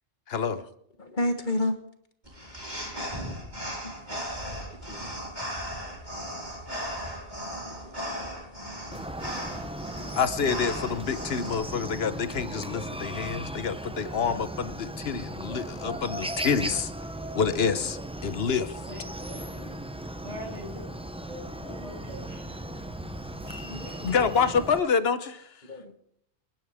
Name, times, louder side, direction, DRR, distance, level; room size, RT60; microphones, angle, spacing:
voice 1, 0.3-0.7 10.2-16.9 17.3-18.8 24.0-25.5, left 6 dB, 65° left, 12 dB, 1.1 m, -27 dB
voice 2, 1.0-1.7 3.8-3.9 4.4-4.6 4.9-5.1 8.1-8.3 23.7-24.3 25.6-25.9, left 1 dB, 45° left, 6 dB, 1.6 m, -31 dB
sound 1, 2.3-11.5, equal, 40° right, 4.7 m, -37 dB
voice 3, 8.0-8.4 18.8-19.5 20.2-20.9 21.3-22.3, equal, 90° right, 0 dB, 5.4 m, -42 dB
Chicken rooster, 8.9-24.8, right 1 dB, 10° right, 0.3 m, -37 dB
sound 2, 19.5-20.9 21.2-24.6, right 1 dB, 65° right, 5.9 m, -48 dB
27.0 x 10.5 x 3.5 m, 0.71 s
omnidirectional pair, 1.2 m